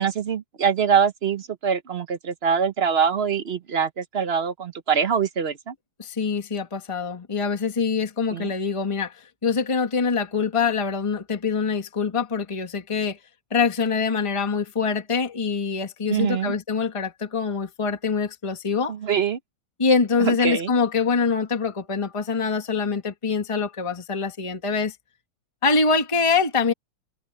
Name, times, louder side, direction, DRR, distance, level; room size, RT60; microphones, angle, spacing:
voice 1, 0.0-5.7 8.3-8.5 16.1-16.6 18.9-19.4 20.2-20.7, right 7 dB, 50° right, 0.8 m, -24 dB
voice 2, 6.0-9.1 9.4-13.2 13.5-18.9 19.8-24.9 25.6-26.7, left 5 dB, 20° left, 1.5 m, -24 dB
omnidirectional pair, 1.9 m